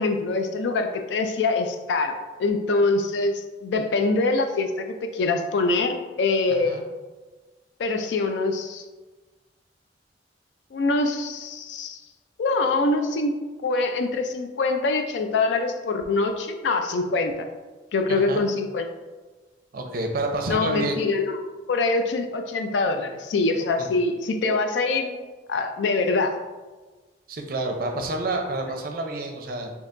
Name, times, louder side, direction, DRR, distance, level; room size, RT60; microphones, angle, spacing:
voice 1, 0.0-6.9 7.8-8.8 10.7-12.0 12.4-17.5 17.9-18.9 20.5-21.4 21.7-26.4, left 3 dB, 75° left, 6 dB, 0.4 m, -24 dB
voice 2, 18.1-18.4 19.7-21.0 27.3-29.7, right 2 dB, 55° right, 3 dB, 0.5 m, -29 dB
4.3 x 2.9 x 2.5 m, 1.3 s
head